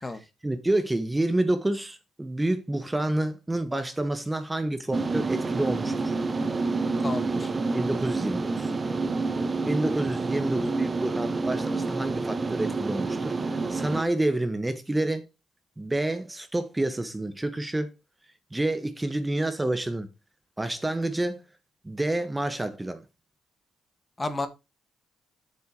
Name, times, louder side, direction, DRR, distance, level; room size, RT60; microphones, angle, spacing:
voice 1, 0.4-6.1 7.7-8.7 9.7-15.3 15.8-17.9 18.5-20.1 20.6-21.4 21.8-23.0, right 1 dB, 15° right, 1.4 m, -28 dB
sound 1, 4.9-14.0, right 3 dB, 30° right, 0.8 m, -28 dB
voice 2, 7.0-7.5 24.2-24.5, left 2 dB, 25° left, 1.6 m, -31 dB
7.9 x 6.9 x 4.8 m
cardioid pair, 90°, 0 cm